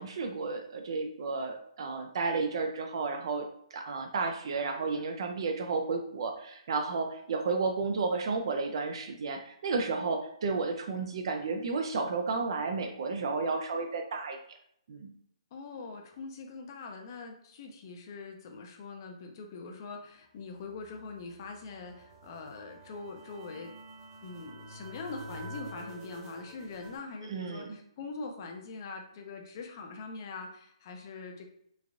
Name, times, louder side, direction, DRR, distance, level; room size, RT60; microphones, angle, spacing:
voice 1, 0.0-14.4 14.9-15.1 27.3-27.7, right 4 dB, 55° right, 4 dB, 0.3 m, -32 dB
voice 2, 15.5-23.8 24.2-31.5, left 4 dB, 35° left, 3 dB, 0.5 m, -43 dB
sound 1, 20.5-27.0, right 1 dB, 20° right, 0.7 m, -48 dB
3.1 x 2.4 x 2.4 m, 0.70 s
hypercardioid pair, 160°, 3 cm